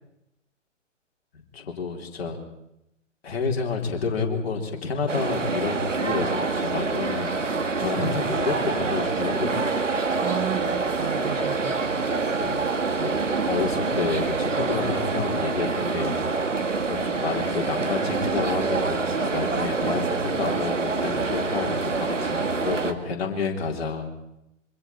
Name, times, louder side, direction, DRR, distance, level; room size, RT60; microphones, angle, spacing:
voice 1, 1.3-2.4 3.2-7.4 7.8-9.8 12.4-12.7 13.0-13.2 13.5-16.2 16.9-24.1, left 5 dB, 55° left, 2 dB, 4.0 m, -29 dB
sound 1, 5.1-22.9, right 4 dB, 75° right, 2.1 m, -26 dB
voice 2, 7.8-8.1 10.2-12.1, right 9 dB, 20° right, 5 dB, 1.6 m, -33 dB
26.5 x 25.0 x 4.6 m, 0.84 s
figure-of-eight pair, 130°, 38 cm